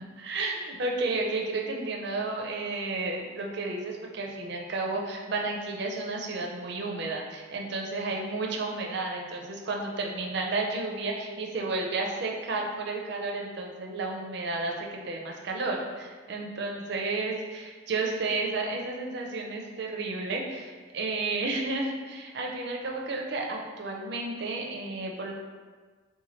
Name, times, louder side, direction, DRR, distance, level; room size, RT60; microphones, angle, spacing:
voice 1, 0.2-25.3, right 3 dB, 55° right, 0 dB, 0.4 m, -32 dB
3.0 x 2.2 x 4.1 m, 1.5 s
head